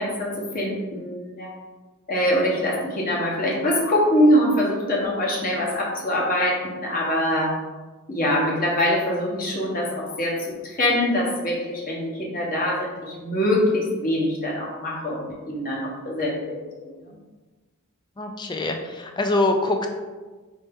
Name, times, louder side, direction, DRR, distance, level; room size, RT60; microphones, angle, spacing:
voice 1, 0.0-1.5 2.1-7.5 8.1-10.4 10.6-16.3 16.8-16.9, left 1 dB, 40° left, -3 dB, 1.0 m, -23 dB
voice 2, 18.2-19.9, left 2 dB, 20° left, 5 dB, 0.3 m, -24 dB
4.4 x 2.7 x 3.5 m, 1.3 s
head